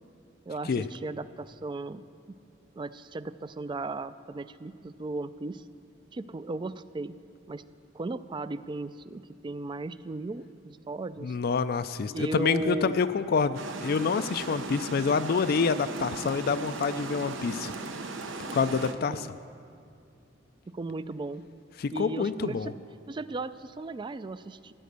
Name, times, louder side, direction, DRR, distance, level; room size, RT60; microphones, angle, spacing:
voice 1, 0.5-2.1 2.7-5.6 6.1-7.2 7.5-7.6 7.9-11.4 12.1-13.1 19.1-19.3 20.7-21.4 21.9-22.7 23.1-24.7, right 3 dB, 25° right, 14 dB, 0.3 m, -36 dB
voice 2, 11.2-17.7 18.5-19.3 21.8-22.7, left 5 dB, 55° left, 12 dB, 0.4 m, -27 dB
Water, 13.5-18.9, right 3 dB, 80° right, 0.9 m, -37 dB
14.0 x 10.0 x 6.7 m, 2.4 s
head